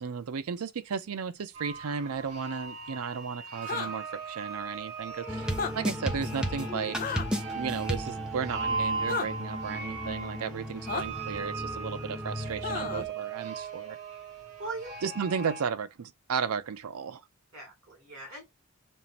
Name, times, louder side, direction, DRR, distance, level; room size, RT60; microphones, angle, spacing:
voice 1, 0.0-7.2 7.5-14.0 15.0-17.2, right 6 dB, 75° right, 0.5 m, -34 dB
sound 1, 1.5-15.6, right 4 dB, 30° right, 2.2 m, -38 dB
sound 2, 3.6-3.9 5.5-5.7 7.0-7.3 9.1-9.3 10.9-11.0 12.6-13.1, left 5 dB, 40° left, 0.5 m, -32 dB
sound 3, 5.3-13.1, equal, 5° right, 0.6 m, -35 dB
voice 2, 14.6-14.9 17.5-18.4, right 3 dB, 60° right, 3.0 m, -40 dB
5.3 x 2.5 x 2.9 m
head